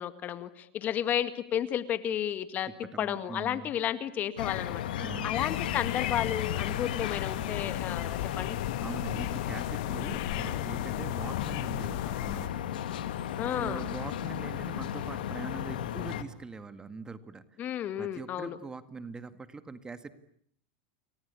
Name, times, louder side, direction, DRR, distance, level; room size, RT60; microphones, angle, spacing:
voice 1, 0.0-2.7 3.0-4.8 5.2-8.6 13.4-13.9 17.6-18.6, left 10 dB, 35° left, 12 dB, 2.0 m, -32 dB
voice 2, 2.7-3.8 5.0-5.4 5.7-5.8 8.8-12.6 13.1-13.3 13.6-17.6 18.0-20.1, right 4 dB, 15° right, 11 dB, 2.0 m, -43 dB
sound 1, 4.4-16.2, left 10 dB, 85° left, 2.4 m, -34 dB
sound 2, 5.3-12.5, left 16 dB, 65° left, 1.6 m, -37 dB
29.5 x 23.5 x 8.4 m, 0.65 s
supercardioid pair, 115°, 5 cm